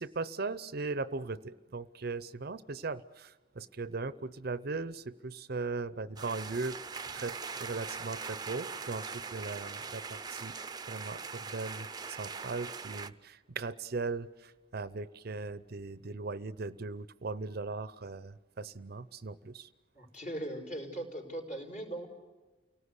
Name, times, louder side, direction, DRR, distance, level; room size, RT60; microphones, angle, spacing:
voice 1, 0.0-6.8 7.1-10.6 10.9-19.7, right 3 dB, 55° right, 16 dB, 0.7 m, -38 dB
sound 1, 6.2-13.1, right 5 dB, 20° right, 0.7 m, -41 dB
voice 2, 19.9-22.1, right 1 dB, 45° left, 2 dB, 4.8 m, -39 dB
29.5 x 18.5 x 8.2 m, 1.3 s
head